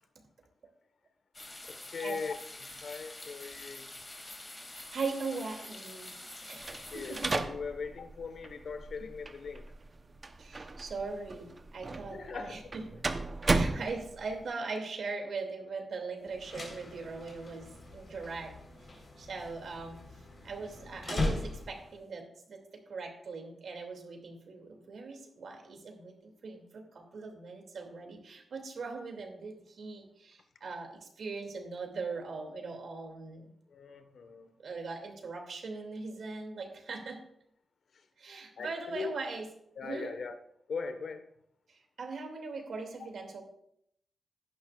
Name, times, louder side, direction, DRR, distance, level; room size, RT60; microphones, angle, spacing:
sound 1, 1.3-7.4, left 2 dB, 25° left, 2.4 m, -46 dB
voice 1, 1.7-2.3 2.6-3.9 6.7-9.7 12.1-12.7 33.7-34.5 38.6-39.2 39.8-40.4 40.7-41.2, left 5 dB, 70° left, 1.2 m, -40 dB
voice 2, 4.7-7.4 9.0-9.1 10.4-12.8 13.4-18.6 19.2-20.0 20.4-33.5 34.6-37.2 38.2-39.5 39.8-40.1 41.7-43.4, right 4 dB, 70° right, 2.5 m, -40 dB
sound 2, 6.6-14.4, right 3 dB, 35° right, 0.8 m, -35 dB
sound 3, 16.3-22.0, left 2 dB, 45° left, 4.0 m, -39 dB
16.0 x 11.0 x 2.4 m
wide cardioid pair, 120°, 0 cm